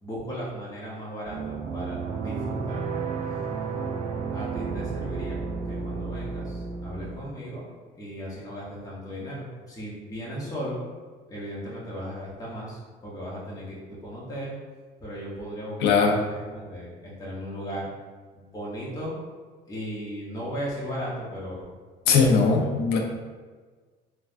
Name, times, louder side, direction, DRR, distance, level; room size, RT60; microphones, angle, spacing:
voice 1, 0.0-2.8 4.3-7.6 7.9-10.8 11.3-14.6 15.0-17.9 18.3-19.2 19.7-21.6 22.0-22.8, equal, 20° left, -6 dB, 0.9 m, -36 dB
sound 1, 1.2-7.2, right 5 dB, 50° right, 0.4 m, -32 dB
voice 2, 15.8-16.2 22.1-23.0, left 5 dB, 80° left, 2 dB, 0.5 m, -20 dB
3.2 x 2.3 x 2.5 m, 1.4 s
cardioid pair, 110°, 17 cm